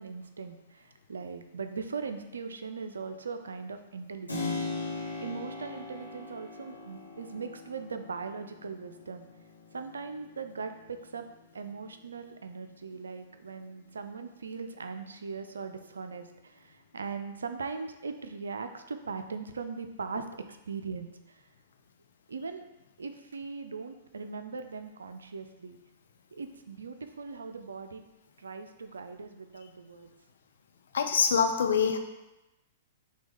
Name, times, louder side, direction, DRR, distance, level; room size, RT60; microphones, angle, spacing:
voice 1, 0.0-4.9 5.2-9.3 9.7-11.2 11.5-21.4 22.3-22.6 23.0-25.8 26.3-28.0 28.4-30.1, right 5 dB, 70° right, 8 dB, 0.4 m, -40 dB
Keyboard (musical), 4.3-12.8, left 3 dB, 85° left, 1.0 m, -41 dB
voice 2, 30.9-32.0, left 6 dB, 60° left, 6 dB, 0.4 m, -24 dB
6.0 x 2.2 x 3.4 m, 0.99 s
figure-of-eight pair, 105°, 0 cm